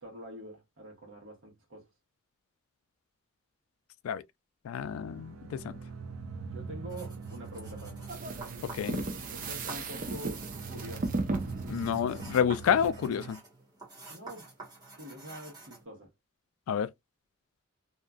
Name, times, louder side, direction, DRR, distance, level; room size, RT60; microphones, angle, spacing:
voice 1, 0.0-1.9 6.4-8.0 9.3-11.2 14.1-14.5 15.0-16.1, equal, 75° right, 1.3 m, -45 dB
voice 2, 4.6-5.7 8.6-9.0 11.7-13.4 16.7-16.9, left 8 dB, 90° left, 0.3 m, -29 dB
sound 1, 4.8-13.3, right 4 dB, 90° right, 0.4 m, -43 dB
sound 2, 6.9-15.8, right 3 dB, 20° right, 1.2 m, -50 dB
sound 3, 8.1-12.9, right 2 dB, 40° right, 0.5 m, -36 dB
2.8 x 2.4 x 2.2 m
head